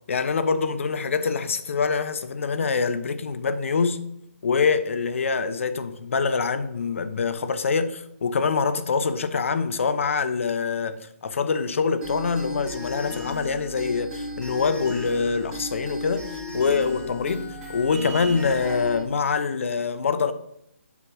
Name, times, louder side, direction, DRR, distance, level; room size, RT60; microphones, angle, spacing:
voice 1, 0.1-4.0 4.4-20.3, left 5 dB, 60° left, 0.8 m, -25 dB
sound 1, 12.0-19.0, left 1 dB, 5° right, 3.1 m, -35 dB
7.2 x 4.3 x 6.0 m
figure-of-eight pair, 145°, 8 cm